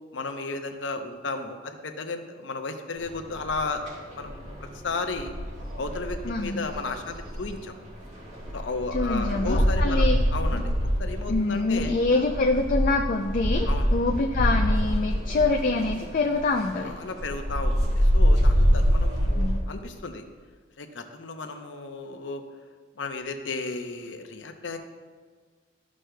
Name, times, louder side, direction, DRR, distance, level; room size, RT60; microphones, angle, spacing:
voice 1, 0.1-3.8 4.1-4.5 4.8-5.3 5.8-7.7 8.5-10.1 10.3-10.7 11.0-11.9 13.7-13.9 16.8-20.2 20.8-22.4 23.0-24.8, left 3 dB, 80° left, 6 dB, 0.7 m, -34 dB
sound 1, 3.0-19.6, equal, 40° right, 1.7 m, -26 dB
voice 2, 6.2-6.7 8.9-10.2 10.5-10.6 11.3-16.9 19.3-19.6, left 3 dB, 45° left, 2 dB, 0.4 m, -25 dB
13.0 x 6.2 x 2.2 m, 1.5 s
head